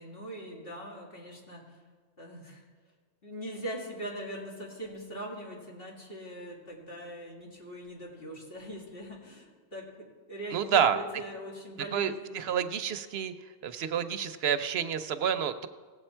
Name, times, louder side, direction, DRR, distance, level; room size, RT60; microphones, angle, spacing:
voice 1, 0.0-1.8 2.2-2.6 3.2-12.6, right 1 dB, 65° left, -3 dB, 2.5 m, -41 dB
voice 2, 10.5-11.0 11.9-13.3 13.6-15.7, right 8 dB, 75° right, 11 dB, 0.9 m, -29 dB
17.5 x 7.8 x 4.4 m, 1.5 s
omnidirectional pair, 1.1 m